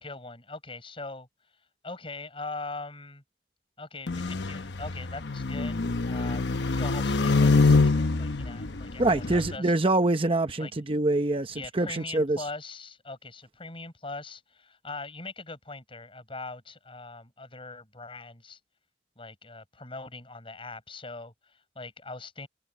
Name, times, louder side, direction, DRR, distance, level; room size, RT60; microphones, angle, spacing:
voice 1, 0.0-1.6 1.8-3.2 3.8-9.7 10.6-10.7 11.5-18.6 19.2-22.5, left 3 dB, 30° left, 5.7 m, -41 dB
sound 1, 4.1-9.6, left 3 dB, 80° left, 0.9 m, -25 dB
voice 2, 9.0-12.4, right 2 dB, 30° right, 0.8 m, -25 dB
head